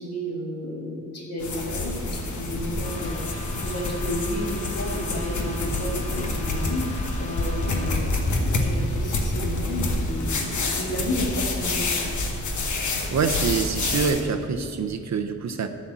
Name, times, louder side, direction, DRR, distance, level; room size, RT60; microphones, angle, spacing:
voice 1, 0.0-12.0, equal, 55° left, -1 dB, 2.1 m, -32 dB
sound 1, 1.4-14.2, left 2 dB, 70° left, 1.3 m, -27 dB
sound 2, 2.8-8.0, left 1 dB, 25° left, 1.3 m, -37 dB
voice 2, 13.1-15.7, right 5 dB, 65° right, 7 dB, 0.7 m, -25 dB
12.0 x 4.3 x 7.5 m, 2.3 s
wide cardioid pair, 115°, 30 cm